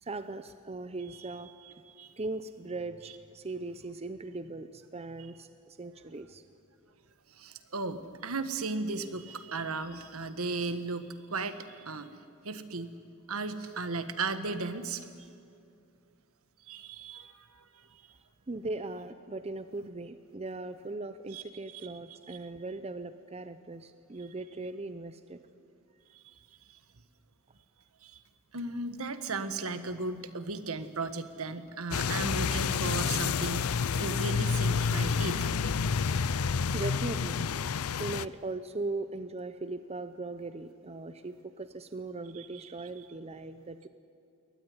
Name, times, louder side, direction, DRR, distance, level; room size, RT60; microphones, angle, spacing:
voice 1, 0.0-1.5 2.2-6.4 18.5-25.4 36.7-37.5 38.0-43.9, right 2 dB, 30° right, 11 dB, 0.7 m, -39 dB
voice 2, 1.6-2.2 3.0-3.1 7.3-12.1 12.4-12.9 13.3-15.1 16.7-18.0 21.3-22.4 26.1-26.3 28.0-28.2 28.5-36.3 42.3-42.9, right 3 dB, 70° right, 10 dB, 1.5 m, -36 dB
sound 1, 31.9-38.3, left 5 dB, 70° left, 0.6 m, -29 dB
23.0 x 18.5 x 9.6 m, 2.5 s
head